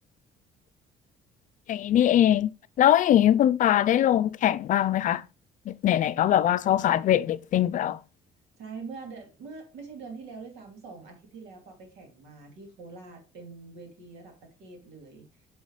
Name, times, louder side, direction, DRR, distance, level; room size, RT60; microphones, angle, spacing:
voice 1, 1.7-2.5 2.8-5.2 5.7-8.0, left 11 dB, 50° left, 0.4 m, -22 dB
voice 2, 8.6-15.5, right 4 dB, 90° right, 2.5 m, -44 dB
6.0 x 5.5 x 3.2 m
cardioid pair, 110°, 17 cm